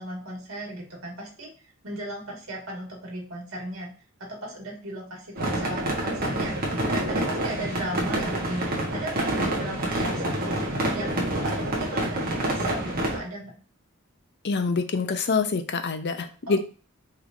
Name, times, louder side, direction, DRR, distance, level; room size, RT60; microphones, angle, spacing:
voice 1, 0.0-3.9 4.2-6.6 6.8-13.5 16.5-16.6, right 1 dB, 70° right, -2 dB, 1.9 m, -36 dB
sound 1, 5.4-13.2, right 1 dB, 45° right, 1.2 m, -27 dB
voice 2, 14.4-16.6, left 4 dB, 55° left, 9 dB, 0.6 m, -26 dB
5.0 x 3.2 x 2.6 m, 0.38 s
head